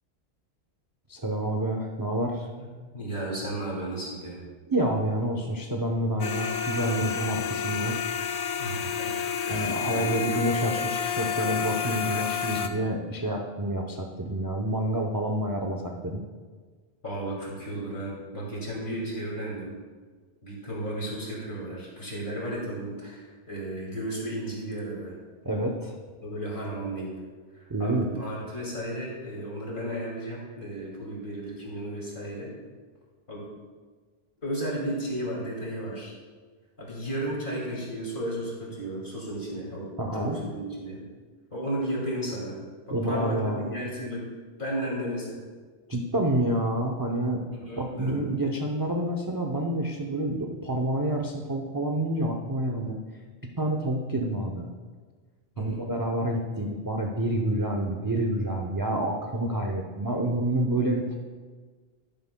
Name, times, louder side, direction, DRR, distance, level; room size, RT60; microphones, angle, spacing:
voice 1, 1.1-2.5 4.7-8.0 9.5-16.2 25.4-26.0 27.7-28.2 40.0-40.4 42.9-43.7 45.9-47.4 47.8-53.0 53.6-54.7 55.6-61.2, right 1 dB, 25° right, 1 dB, 0.5 m, -28 dB
voice 2, 2.9-4.4 8.6-9.1 9.5-10.2 17.0-19.7 20.4-25.2 26.2-27.1 27.5-32.5 33.3-33.5 34.4-36.1 36.8-41.0 41.5-42.6 42.9-44.3 44.6-45.4 47.5-48.2 55.6-55.8, right 1 dB, 45° left, -4 dB, 2.7 m, -34 dB
sound 1, 6.2-12.7, left 7 dB, 70° left, 0.9 m, -30 dB
10.5 x 10.5 x 2.2 m, 1.5 s
omnidirectional pair, 1.2 m